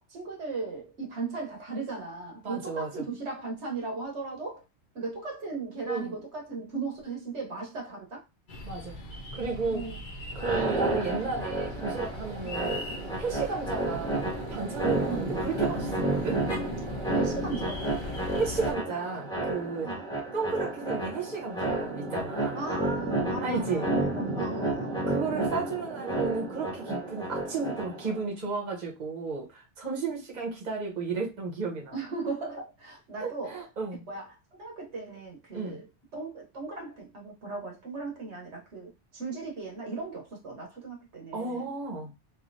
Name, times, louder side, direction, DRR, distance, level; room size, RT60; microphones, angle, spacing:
voice 1, 0.1-4.6 4.9-8.2 9.7-10.0 12.4-12.6 15.1-15.3 17.1-18.0 19.8-20.1 22.6-24.9 31.9-33.6 34.1-35.9 36.1-41.7, right 3 dB, 70° right, 1.3 m, -37 dB
voice 2, 2.4-3.0 5.9-6.1 8.6-9.0 9.3-9.9 10.3-12.8 13.2-16.4 18.4-19.9 20.3-22.6 23.4-23.9 25.1-31.9 33.2-34.0 35.5-35.8 41.3-42.1, right 4 dB, 40° right, 1.1 m, -33 dB
sound 1, 8.5-18.7, left 2 dB, 50° left, 0.7 m, -40 dB
sound 2, 10.3-28.2, right 2 dB, 5° left, 0.7 m, -31 dB
3.2 x 2.7 x 2.6 m
omnidirectional pair, 1.2 m